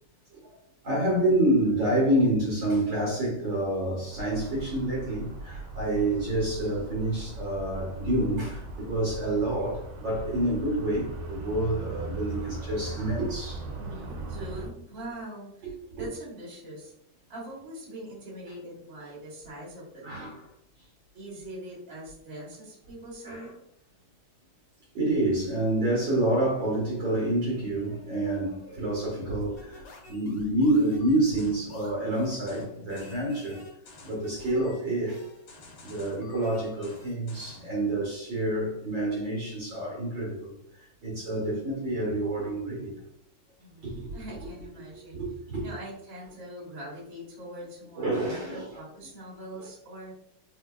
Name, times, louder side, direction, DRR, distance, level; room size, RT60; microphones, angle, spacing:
voice 1, 0.8-13.6 20.0-20.4 23.2-23.5 24.9-33.6 34.0-35.2 35.8-40.5 41.0-42.9 43.8-44.1 45.1-45.6 48.0-48.8, right 1 dB, 65° right, -5 dB, 1.7 m, -28 dB
sound 1, 4.1-14.7, right 2 dB, 80° right, 1.6 m, -39 dB
voice 2, 13.8-16.9 17.3-20.3 21.1-23.6 43.6-45.2 45.6-50.1, right 1 dB, 45° right, -7 dB, 1.7 m, -42 dB
sound 2, 29.6-37.7, left 3 dB, 65° left, 1.4 m, -50 dB
4.3 x 2.7 x 2.3 m, 0.72 s
omnidirectional pair, 2.2 m